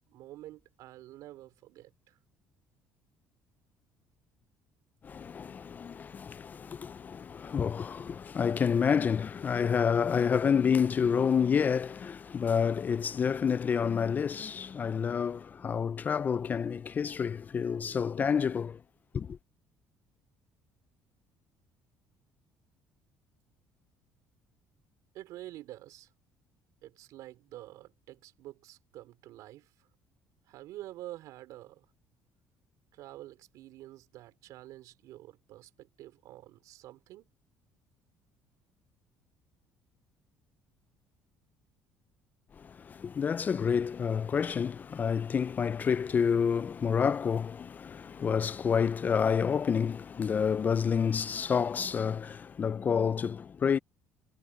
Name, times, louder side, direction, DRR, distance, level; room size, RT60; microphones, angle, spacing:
voice 1, 0.1-2.2 25.1-26.1 26.8-29.9 30.5-31.9 32.9-37.3, right 15 dB, 75° right, 4.8 m, -48 dB
voice 2, 5.0-18.8 19.1-19.4 42.6-53.8, left 7 dB, 30° left, 0.3 m, -29 dB
cardioid pair, 125°, 6 cm